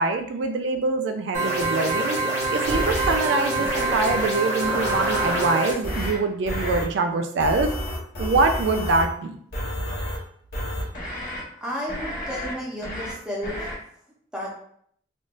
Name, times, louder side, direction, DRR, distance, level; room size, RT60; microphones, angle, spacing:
voice 1, 0.0-2.2 2.5-7.7 8.2-9.4, right 3 dB, 75° right, 6 dB, 0.3 m, -24 dB
sound 1, 1.3-5.7, right 2 dB, 40° right, 1.4 m, -25 dB
sound 2, 2.7-3.2 3.6-4.3 4.6-5.5 5.8-6.2 6.5-6.8 7.4-9.1 9.5-10.2 10.5-11.4 11.9-12.5 12.8-13.1 13.4-13.7, equal, 55° left, 1.2 m, -30 dB
voice 2, 11.6-13.6 14.3-14.6, equal, 5° right, -4 dB, 0.8 m, -32 dB
3.5 x 2.5 x 2.5 m, 0.65 s
head